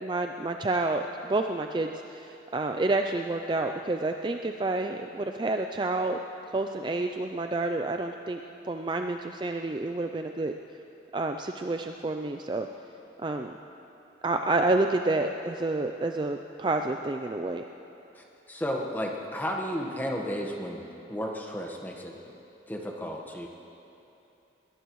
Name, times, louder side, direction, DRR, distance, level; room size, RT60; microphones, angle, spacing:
voice 1, 0.0-1.0 1.3-6.2 6.5-10.5 11.1-12.7 13.2-13.5 14.2-17.6, right 2 dB, 25° right, 5 dB, 0.4 m, -29 dB
voice 2, 18.2-22.1 22.7-23.5, equal, 10° left, 0 dB, 1.3 m, -33 dB
22.0 x 18.0 x 3.1 m, 2.8 s
head